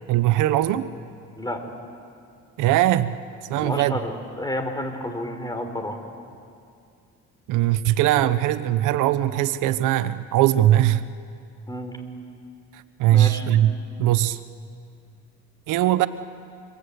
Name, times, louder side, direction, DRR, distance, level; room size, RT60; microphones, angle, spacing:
voice 1, 0.1-0.9 2.6-3.2 3.5-4.0 7.5-11.0 12.7-13.7 14.0-14.4 15.7-16.1, right 13 dB, 90° right, 14 dB, 0.9 m, -20 dB
voice 2, 1.4-1.7 3.5-6.0 11.7-12.0 13.1-13.4, left 1 dB, 15° left, 5 dB, 3.8 m, -30 dB
27.0 x 25.0 x 8.2 m, 2.4 s
cardioid pair, 105°, 30 cm